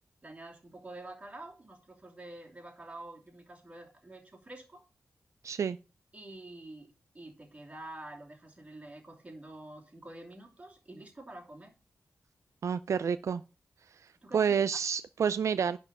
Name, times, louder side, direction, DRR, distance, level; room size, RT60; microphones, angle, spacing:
voice 1, 0.2-4.8 6.1-11.7 14.2-14.8, right 2 dB, 25° right, 2.9 m, -48 dB
voice 2, 5.4-5.8 12.6-13.4 14.3-15.8, right 7 dB, 75° right, 0.4 m, -29 dB
10.5 x 4.5 x 7.1 m
wide cardioid pair, 130°, 5 cm